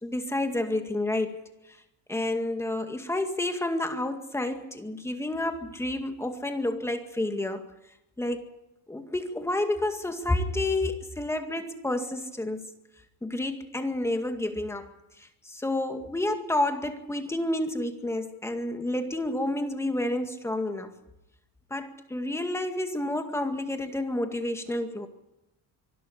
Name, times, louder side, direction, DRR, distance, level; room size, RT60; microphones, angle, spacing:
voice 1, 0.0-1.4 2.1-7.7 8.2-8.4 8.9-12.6 13.2-14.9 15.2-20.9 21.7-25.1, left 1 dB, 5° left, 6 dB, 2.0 m, -30 dB
24.5 x 12.5 x 9.8 m, 0.91 s
cardioid pair, 155°, 39 cm